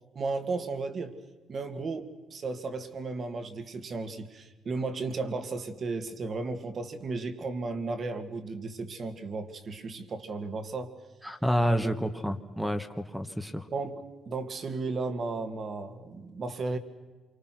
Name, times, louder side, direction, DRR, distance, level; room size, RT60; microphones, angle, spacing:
voice 1, 0.1-1.2 1.5-11.0 11.8-11.9 13.7-16.8, right 3 dB, 50° right, 8 dB, 2.4 m, -34 dB
voice 2, 11.2-13.6, equal, ahead, 8 dB, 1.5 m, -29 dB
27.5 x 24.5 x 6.2 m, 1.3 s
cardioid pair, 90°, 0 cm